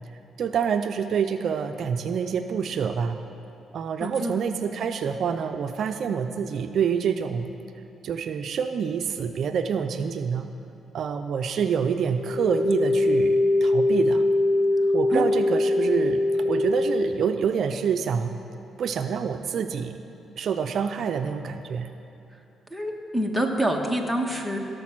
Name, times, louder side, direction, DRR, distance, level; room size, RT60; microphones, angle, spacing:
voice 1, 0.4-3.2 3.7-7.5 8.0-10.5 10.9-14.2 14.9-18.4 18.8-20.1 20.4-21.9, right 7 dB, 60° right, 8 dB, 0.5 m, -27 dB
voice 2, 4.0-4.4 15.1-15.3 22.7-24.6, right 1 dB, ahead, 3 dB, 1.3 m, -26 dB
sound 1, 12.1-17.1, left 2 dB, 55° left, 0.5 m, -22 dB
16.5 x 6.7 x 6.0 m, 2.8 s
cardioid pair, 90°, 0 cm